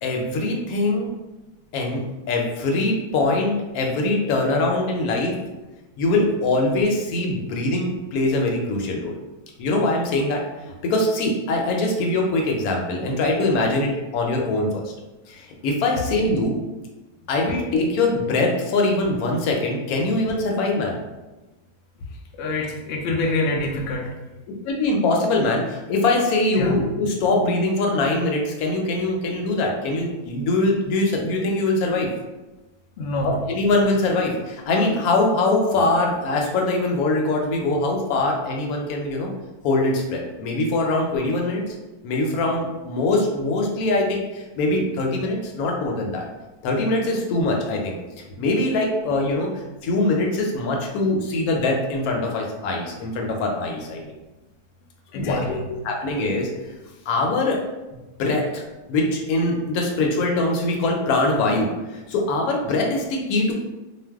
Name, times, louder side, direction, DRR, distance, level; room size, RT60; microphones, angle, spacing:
voice 1, 0.0-1.1 1.7-5.4 6.0-9.2 9.6-10.4 10.7-14.8 15.3-16.6 17.3-21.0 24.6-32.1 33.2-39.3 39.6-41.7 42.0-46.3 46.6-48.0 48.4-49.5 49.8-54.1 55.1-55.5 55.8-56.5 57.1-57.6 58.2-58.6 58.9-63.5, left 2 dB, 70° left, 0 dB, 1.0 m, -22 dB
voice 2, 22.4-24.1 26.6-26.8 33.0-33.4 55.1-55.6, left 2 dB, 90° left, 1 dB, 0.5 m, -25 dB
2.5 x 2.2 x 3.4 m, 1.1 s
omnidirectional pair, 1.7 m